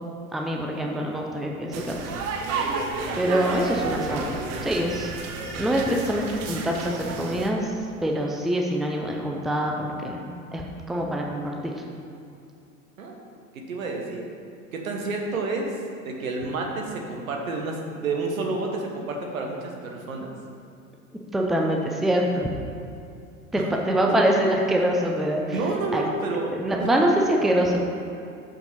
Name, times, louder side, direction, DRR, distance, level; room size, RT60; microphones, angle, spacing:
voice 1, 0.3-2.0 3.1-5.1 5.6-10.2 10.5-11.7 21.3-22.5 23.5-25.6 25.9-26.1 26.6-27.9, right 1 dB, ahead, 0 dB, 0.6 m, -25 dB
sound 1, 1.7-7.5, right 4 dB, 35° right, 0.9 m, -31 dB
voice 2, 13.5-14.2 14.7-15.7 16.0-20.3 23.5-23.8 25.5-26.5 26.8-26.9, right 3 dB, 70° right, 1 dB, 1.4 m, -29 dB
6.8 x 5.8 x 5.5 m, 2.6 s
figure-of-eight pair, 80°, 43 cm